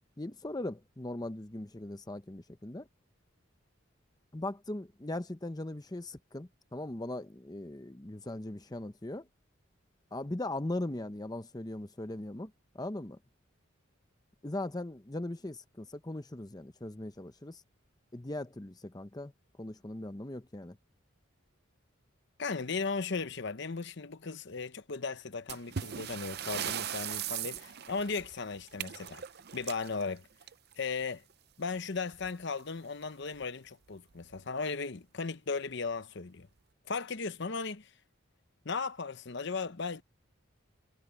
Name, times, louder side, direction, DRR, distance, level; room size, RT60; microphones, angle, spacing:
voice 1, 0.2-2.9 4.3-9.3 10.1-13.2 14.4-17.6 18.1-19.3 19.6-20.8, left 1 dB, 20° left, 0.7 m, -39 dB
voice 2, 22.4-29.2 29.5-30.3 30.8-31.2 31.6-36.5 36.9-37.9 38.6-40.0, left 4 dB, 55° left, 0.9 m, -36 dB
sound 1, 25.5-30.9 32.1-32.3 32.6-32.7 33.3-33.4 34.1-34.4, right 9 dB, 50° right, 0.6 m, -39 dB
head